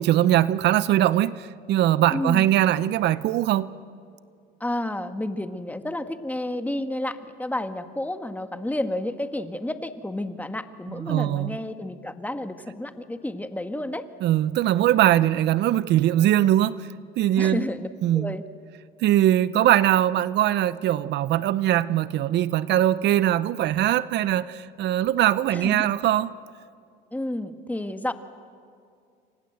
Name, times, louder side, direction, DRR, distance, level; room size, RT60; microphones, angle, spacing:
voice 1, 0.0-3.7 11.0-11.6 14.2-16.9 17.2-17.7 18.0-18.3 19.0-26.3, right 12 dB, 65° right, 0.7 m, -21 dB
voice 2, 2.1-2.4 4.6-14.0 17.4-18.4 25.5-25.9 27.1-28.1, left 1 dB, 10° left, 1.6 m, -31 dB
29.0 x 25.0 x 8.0 m
cardioid pair, 90°, 19 cm